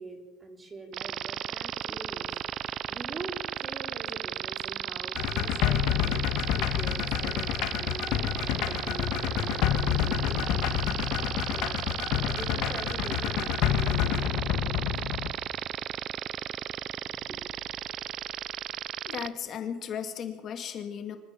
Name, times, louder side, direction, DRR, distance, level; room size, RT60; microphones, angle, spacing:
voice 1, 0.0-10.9 11.5-11.8 12.2-14.9 17.0-17.4, right 3 dB, 20° right, 5 dB, 3.8 m, -44 dB
sound 1, 0.9-19.3, right 11 dB, 45° right, 0.8 m, -34 dB
sound 2, 5.1-15.3, left 11 dB, 60° left, 1.8 m, -28 dB
voice 2, 19.0-21.2, left 8 dB, 40° left, 8 dB, 2.1 m, -35 dB
26.0 x 15.0 x 7.4 m, 1.0 s
cardioid pair, 145°, 0 cm